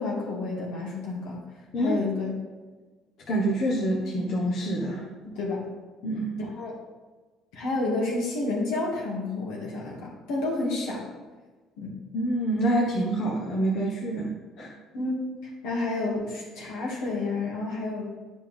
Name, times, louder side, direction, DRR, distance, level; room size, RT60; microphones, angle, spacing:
voice 1, 0.0-1.4 1.8-2.4 5.2-5.6 6.4-6.8 7.5-11.0 11.8-11.9 14.9-18.1, left 2 dB, 85° left, -3 dB, 2.1 m, -30 dB
voice 2, 3.3-5.0 6.0-6.3 12.1-14.7, right 1 dB, 60° left, -3 dB, 1.3 m, -26 dB
9.4 x 5.3 x 3.5 m, 1.3 s
supercardioid pair, 90°, 0 cm